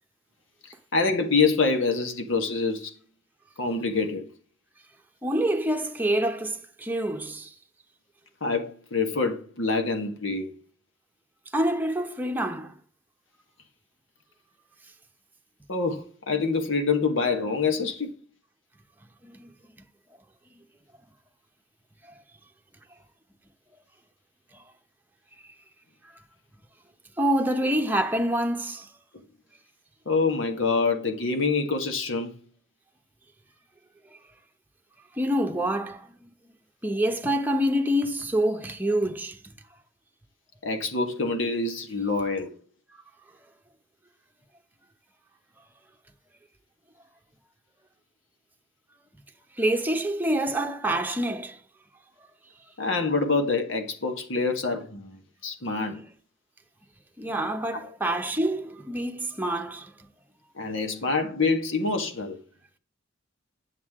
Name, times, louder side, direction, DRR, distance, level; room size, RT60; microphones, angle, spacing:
voice 1, 0.9-2.9 3.6-4.3 8.4-10.5 15.7-18.1 30.1-32.4 40.6-42.6 52.8-56.0 57.7-57.9 60.6-62.4, left 4 dB, 70° left, 1.6 m, -26 dB
voice 2, 5.2-7.5 11.5-12.7 19.2-19.5 27.2-28.9 35.2-36.1 36.8-39.4 49.6-51.6 57.2-59.9, right 1 dB, 10° right, 1.0 m, -26 dB
9.5 x 7.4 x 3.6 m
head